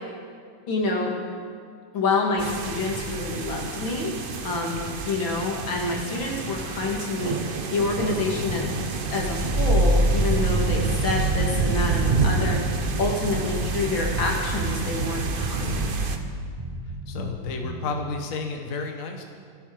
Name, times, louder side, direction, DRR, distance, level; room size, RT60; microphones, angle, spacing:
voice 1, 0.7-1.1 1.9-4.1 4.4-8.7 9.1-15.9, left 3 dB, 75° left, 0 dB, 3.0 m, -27 dB
sound 1, 2.4-16.2, right 3 dB, 45° right, 0.7 m, -26 dB
sound 2, 8.5-18.0, right 1 dB, 20° right, 0.9 m, -35 dB
voice 2, 17.1-19.2, left 4 dB, 45° left, 3 dB, 1.5 m, -32 dB
26.5 x 9.0 x 5.1 m, 2.1 s
omnidirectional pair, 2.1 m